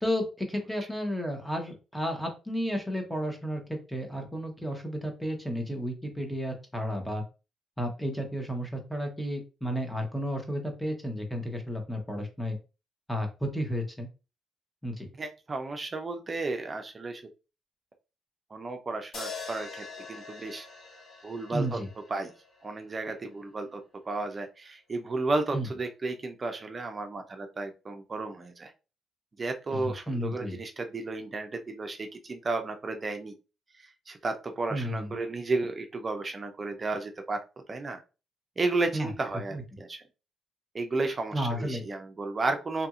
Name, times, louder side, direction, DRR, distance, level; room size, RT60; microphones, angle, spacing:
voice 1, 0.0-7.2 7.8-12.6 13.1-14.1 14.8-15.1 21.5-21.9 25.5-25.7 29.7-30.6 34.7-35.1 38.9-39.1 39.5-39.6 41.3-41.9, equal, 5° left, 3 dB, 0.9 m, -32 dB
voice 2, 15.2-17.2 18.5-20.7 21.2-21.8 22.1-22.3 22.6-23.8 24.1-28.7 29.4-33.3 33.8-37.4 37.7-38.0 38.6-40.0 40.7-42.9, right 3 dB, 30° right, 5 dB, 0.5 m, -33 dB
sound 1, 19.1-23.4, left 4 dB, 55° left, 1.5 m, -44 dB
2.8 x 2.6 x 2.4 m, 0.30 s
cardioid pair, 90°, 0 cm